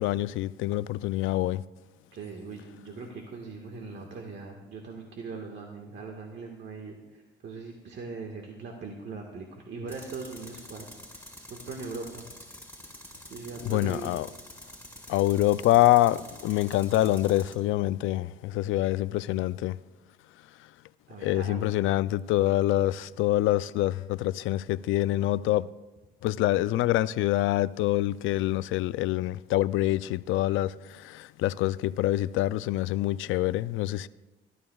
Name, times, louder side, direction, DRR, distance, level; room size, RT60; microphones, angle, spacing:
voice 1, 0.0-1.6 13.7-14.3 15.1-19.8 21.2-25.7 26.2-34.1, left 15 dB, 90° left, 0.4 m, -26 dB
voice 2, 2.1-10.9 11.1-12.3 13.3-14.2 21.1-22.0, right 4 dB, 60° right, 1.6 m, -40 dB
Tools, 9.9-17.6, left 1 dB, 10° left, 4.0 m, -47 dB
23.0 x 12.5 x 2.4 m
cardioid pair, 90°, 20 cm